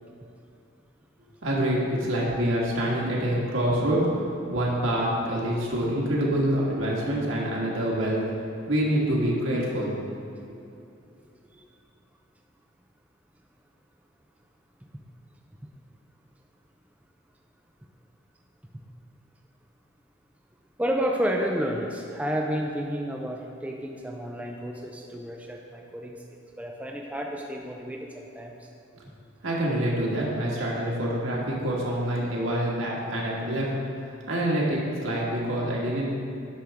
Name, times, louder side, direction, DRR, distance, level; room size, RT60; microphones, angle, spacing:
voice 1, 1.4-4.1 4.5-8.2 8.7-9.9 29.4-33.7 34.3-36.1, right 1 dB, 75° right, -4 dB, 1.8 m, -26 dB
voice 2, 20.8-26.2 26.6-28.5, equal, 5° right, 0 dB, 0.4 m, -30 dB
10.0 x 6.3 x 3.6 m, 2.7 s
head